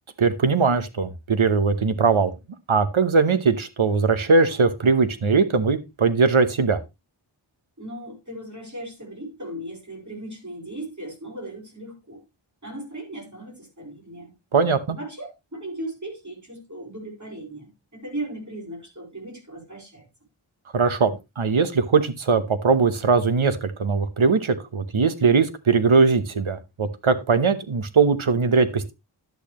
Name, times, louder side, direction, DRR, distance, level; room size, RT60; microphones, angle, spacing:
voice 1, 0.2-2.3 2.7-6.8 14.5-15.0 20.7-28.9, right 4 dB, 85° right, 1.1 m, -20 dB
voice 2, 7.8-12.2 12.6-14.4 14.9-20.1, right 1 dB, 40° right, 4.5 m, -37 dB
11.0 x 8.6 x 3.0 m
wide cardioid pair, 50°, 47 cm